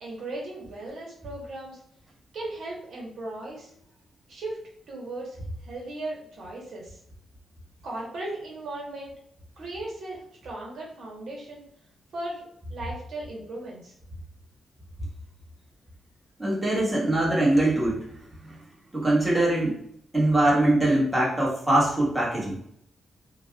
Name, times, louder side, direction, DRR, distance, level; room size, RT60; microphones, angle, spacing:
voice 1, 0.0-1.8 2.3-3.7 4.3-4.6 4.9-5.4 5.6-7.0 7.8-9.1 9.6-11.7 12.1-13.9, right 2 dB, 70° right, -3 dB, 0.9 m, -37 dB
voice 2, 16.4-18.0 18.4-18.6 18.9-19.8 20.1-22.6, right 1 dB, 10° right, -6 dB, 1.2 m, -22 dB
4.0 x 2.2 x 2.2 m, 0.70 s
cardioid pair, 120°, 0 cm